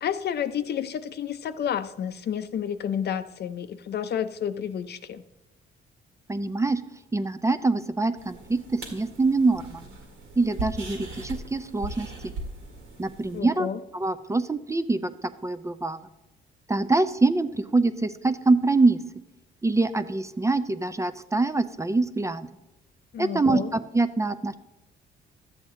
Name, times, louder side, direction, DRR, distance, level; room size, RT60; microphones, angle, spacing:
voice 1, 0.0-5.2 13.3-13.8 23.1-23.7, left 8 dB, 55° left, 12 dB, 0.6 m, -30 dB
voice 2, 6.3-6.8 7.1-9.8 10.4-12.1 13.0-15.1 15.4-16.1 16.7-19.0 19.6-22.5 23.2-24.5, right 3 dB, 15° right, 11 dB, 0.4 m, -24 dB
sound 1, 8.2-13.4, right 2 dB, 85° right, 2.0 m, -39 dB
12.0 x 7.8 x 3.7 m, 0.96 s
cardioid pair, 90°, 20 cm